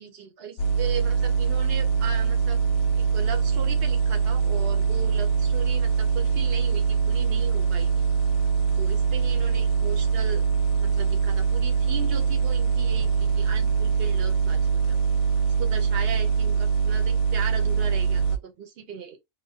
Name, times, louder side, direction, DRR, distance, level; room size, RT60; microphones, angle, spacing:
voice 1, 0.0-2.6 3.0-8.1 8.8-10.5 10.8-15.0 15.6-19.2, right 7 dB, 55° right, 0.8 m, -37 dB
sound 1, 0.6-18.4, right 6 dB, 70° left, 0.8 m, -23 dB
2.8 x 2.1 x 2.7 m
omnidirectional pair, 1.4 m